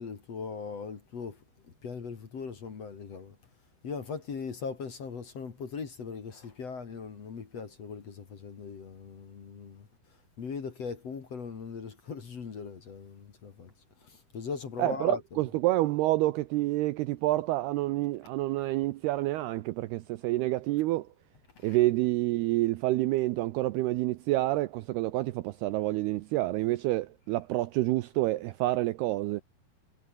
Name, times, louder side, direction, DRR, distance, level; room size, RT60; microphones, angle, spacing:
voice 1, 0.0-1.4 1.8-3.4 3.8-9.9 10.4-13.7 14.0-15.4 21.6-21.8, left 5 dB, 40° left, 2.9 m, -39 dB
voice 2, 14.8-21.1 21.6-29.4, right 17 dB, 80° right, 2.4 m, -28 dB
omnidirectional pair, 5.3 m